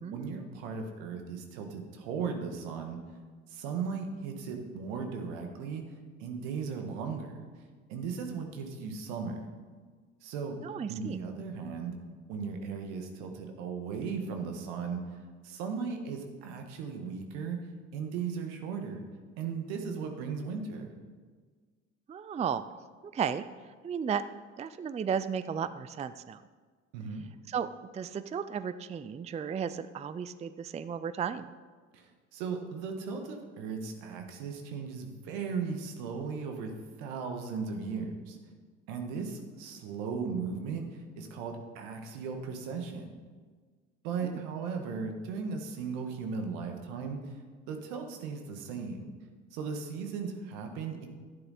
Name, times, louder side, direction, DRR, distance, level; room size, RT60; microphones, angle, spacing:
voice 1, 0.1-3.0 3.5-5.8 6.2-7.3 7.9-9.5 10.2-10.6 10.9-12.0 12.3-15.0 15.4-17.6 17.9-19.1 19.4-20.9 26.9-27.2 31.9-36.7 37.0-38.4 38.9-43.2 44.0-47.2 47.7-49.1 49.5-51.1, right 5 dB, 75° right, 4 dB, 1.7 m, -37 dB
voice 2, 10.6-11.2 22.1-22.6 23.1-23.5 23.8-24.2 24.6-26.4 27.5-31.5 44.2-44.4, right 7 dB, 20° right, 14 dB, 0.4 m, -34 dB
12.0 x 9.6 x 4.2 m, 1.5 s
hypercardioid pair, 60°, 36 cm